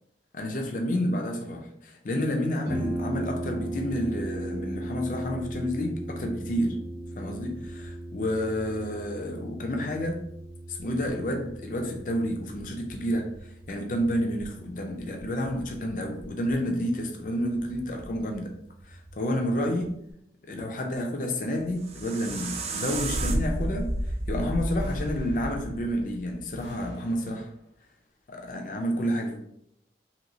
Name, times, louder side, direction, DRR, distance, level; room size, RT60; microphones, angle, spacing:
voice 1, 0.3-6.8 7.2-10.2 10.7-18.5 18.8-20.0 20.5-23.9 24.3-27.5 28.3-29.4, equal, 45° left, 2 dB, 0.4 m, -30 dB
Harp, 2.7-20.1, right 1 dB, 15° right, 0.8 m, -38 dB
sound 1, 21.6-26.7, right 1 dB, 35° right, 0.3 m, -31 dB
sound 2, 22.3-23.5 24.8-26.0 26.6-27.7, left 1 dB, 75° left, 0.7 m, -46 dB
3.0 x 2.8 x 2.7 m, 0.75 s
head